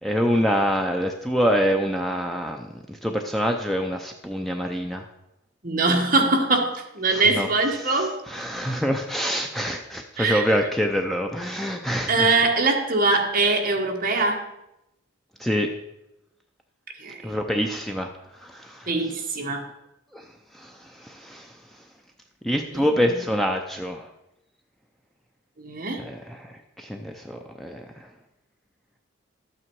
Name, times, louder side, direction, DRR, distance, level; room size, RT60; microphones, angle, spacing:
voice 1, 0.0-5.0 7.1-7.5 7.8-12.4 15.4-15.7 17.2-18.1 18.4-18.9 20.1-20.3 20.5-21.5 22.4-24.1 26.0-28.1, equal, ahead, 2 dB, 0.6 m, -26 dB
voice 2, 5.6-8.2 10.2-10.5 12.1-14.4 17.0-17.4 18.9-19.7 22.7-23.0 25.6-26.0, right 3 dB, 45° right, 2 dB, 1.4 m, -22 dB
12.0 x 8.7 x 4.6 m, 0.88 s
head